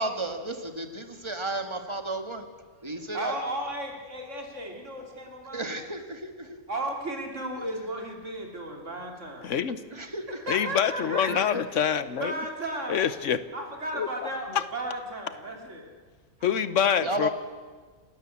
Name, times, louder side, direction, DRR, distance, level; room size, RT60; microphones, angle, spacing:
voice 1, 0.0-2.5 2.8-3.3 5.5-6.3 9.9-10.2 11.3-11.4 17.0-17.3, right 2 dB, 20° right, 6 dB, 1.7 m, -32 dB
voice 2, 3.1-5.7 6.7-9.5 10.4-11.5 12.2-13.1 13.5-15.9, right 1 dB, 70° right, 2 dB, 3.3 m, -34 dB
voice 3, 9.4-9.8 10.5-12.3 12.9-13.4 13.9-14.1 16.4-17.3, left 8 dB, 75° left, 14 dB, 1.3 m, -25 dB
29.0 x 13.0 x 8.5 m, 1.5 s
omnidirectional pair, 1.3 m